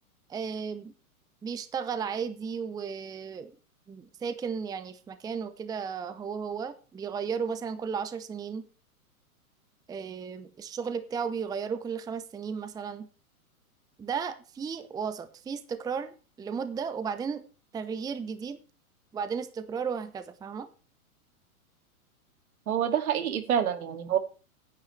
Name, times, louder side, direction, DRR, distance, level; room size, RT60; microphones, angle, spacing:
voice 1, 0.3-0.9 1.4-3.5 3.9-8.6 9.9-13.1 14.0-17.4 17.7-18.6 19.1-20.7, right 6 dB, 10° right, 0.7 m, -34 dB
voice 2, 22.7-24.2, right 9 dB, 75° right, 2.4 m, -27 dB
15.5 x 10.0 x 3.3 m
hypercardioid pair, 120°, 44 cm